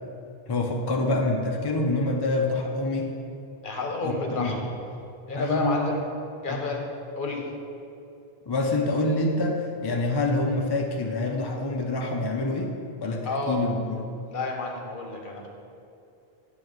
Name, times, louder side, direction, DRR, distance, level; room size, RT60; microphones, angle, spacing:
voice 1, 0.5-3.1 4.0-4.6 5.3-5.9 6.5-6.6 8.5-12.7 13.0-14.1, left 2 dB, 30° left, 1 dB, 0.5 m, -26 dB
voice 2, 3.6-4.7 5.3-6.0 6.4-6.9 7.2-7.4 13.2-13.6 14.3-15.5, left 3 dB, 55° left, 1 dB, 1.0 m, -30 dB
9.1 x 3.1 x 6.4 m, 2.7 s
omnidirectional pair, 1.1 m